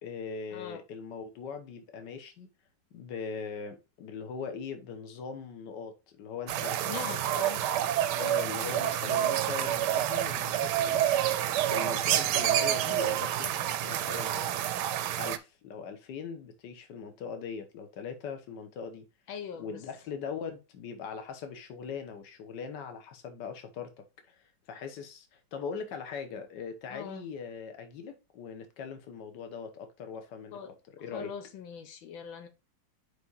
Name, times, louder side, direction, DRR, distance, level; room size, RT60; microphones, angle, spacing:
voice 1, 0.0-2.5 2.9-6.8 7.3-7.4 8.1-11.2 11.7-13.5 13.8-14.5 15.1-19.1 19.6-24.3 24.7-30.7 31.0-31.3, left 6 dB, 70° left, 1.6 m, -40 dB
sound 1, 6.5-15.4, right 11 dB, 75° right, 1.1 m, -28 dB
voice 2, 6.8-7.7 19.3-19.8 26.9-27.3 30.5-30.7 31.1-32.5, left 7 dB, 90° left, 1.6 m, -41 dB
5.2 x 4.9 x 3.9 m
omnidirectional pair, 2.1 m